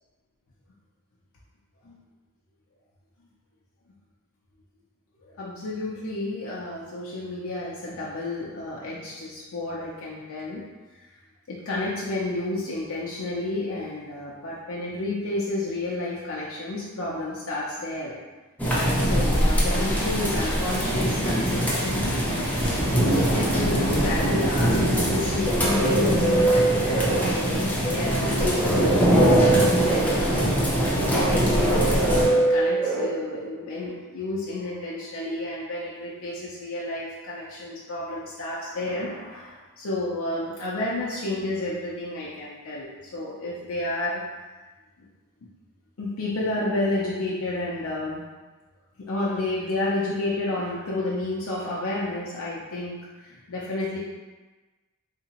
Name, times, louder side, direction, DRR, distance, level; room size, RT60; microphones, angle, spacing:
voice 1, 5.2-10.7 10.9-11.1 11.5-18.2 19.0-22.3 23.0-30.8 31.0-44.2 45.0-45.1 46.0-48.2 49.0-54.0, left 2 dB, 65° left, -6 dB, 0.5 m, -31 dB
sound 1, 18.6-32.3, equal, 5° left, 0.6 m, -23 dB
sound 2, 25.1-33.8, right 2 dB, 15° right, 0.9 m, -25 dB
3.4 x 2.9 x 2.8 m, 1.2 s
head